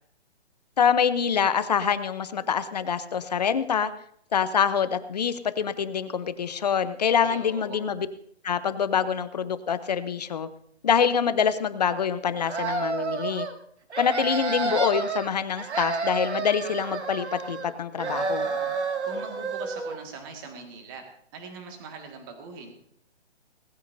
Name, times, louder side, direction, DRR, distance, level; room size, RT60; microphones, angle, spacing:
voice 1, 0.8-3.9 4.3-8.1 8.4-10.5 10.8-13.5 14.0-18.5, left 7 dB, 35° left, 12 dB, 0.8 m, -25 dB
voice 2, 7.2-7.8 19.0-21.0 21.3-22.8, right 4 dB, 20° right, 4 dB, 1.9 m, -41 dB
sound 1, 12.4-13.5 13.9-15.3 15.6-17.7 18.0-20.0, right 4 dB, 75° right, 2.2 m, -30 dB
19.5 x 14.5 x 2.7 m, 0.66 s
hypercardioid pair, 165°, 34 cm